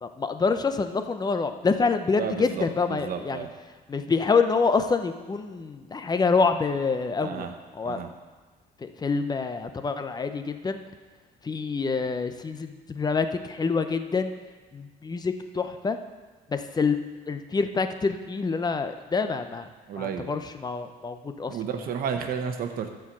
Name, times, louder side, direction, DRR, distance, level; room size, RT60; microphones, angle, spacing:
voice 1, 0.0-3.4 3.9-7.5 7.8-8.0 8.8-10.8 11.4-14.3 14.7-16.0 16.5-17.0 17.3-19.7 20.0-21.6, left 4 dB, 25° left, 8 dB, 0.7 m, -26 dB
voice 2, 2.2-3.5 7.2-7.5 7.8-8.1 19.9-20.3 21.5-22.9, right 7 dB, 60° right, 5 dB, 1.2 m, -32 dB
13.5 x 4.7 x 6.1 m, 1.3 s
cardioid pair, 110°, 17 cm